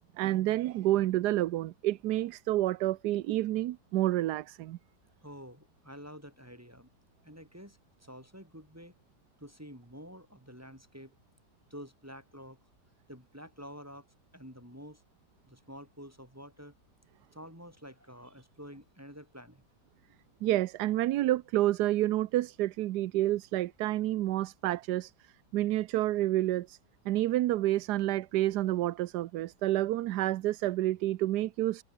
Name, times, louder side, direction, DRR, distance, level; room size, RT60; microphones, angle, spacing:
voice 1, 0.2-4.8 20.4-26.8 27.1-31.8, right 15 dB, 75° right, 1.2 m, -29 dB
voice 2, 5.2-6.9 7.2-9.0 9.4-11.1 11.7-12.6 13.1-14.1 14.3-15.0 15.5-16.7 17.3-19.6, equal, 10° right, 5.3 m, -49 dB
omnidirectional pair, 1.8 m